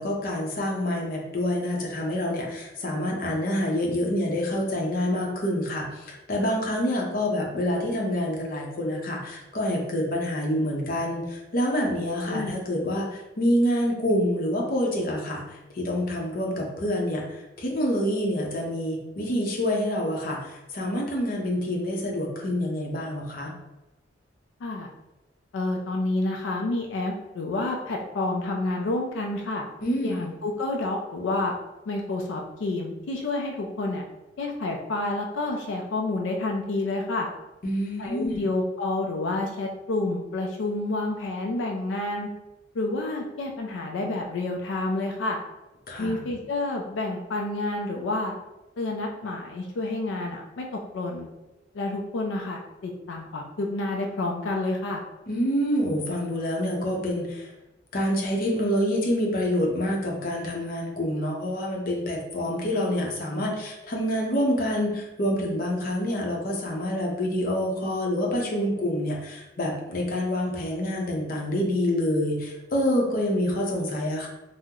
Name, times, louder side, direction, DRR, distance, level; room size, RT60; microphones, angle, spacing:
voice 1, 0.0-17.3 17.6-23.5 29.8-30.2 37.6-38.4 45.9-46.2 55.3-57.5 57.9-74.3, equal, 50° left, -1 dB, 0.6 m, -27 dB
voice 2, 25.5-29.6 30.0-31.5 31.9-34.0 34.4-37.3 38.0-42.3 42.7-45.4 46.0-48.3 48.8-50.7 50.9-51.3 51.7-55.0, left 2 dB, 90° left, 1 dB, 0.4 m, -29 dB
3.6 x 2.0 x 2.8 m, 0.98 s
head